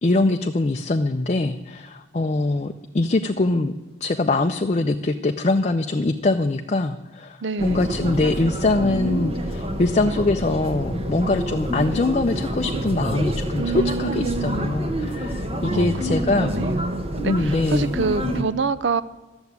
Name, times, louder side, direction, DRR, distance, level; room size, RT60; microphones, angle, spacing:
voice 1, 0.0-3.7 4.0-16.5 17.2-17.9, left 2 dB, 35° left, 5 dB, 0.5 m, -23 dB
voice 2, 7.4-7.9 13.5-14.7 15.6-19.0, right 4 dB, 70° right, 16 dB, 0.5 m, -27 dB
sound 1, 7.6-18.4, right 1 dB, 30° right, 1.1 m, -27 dB
12.5 x 7.0 x 9.4 m, 1.1 s
head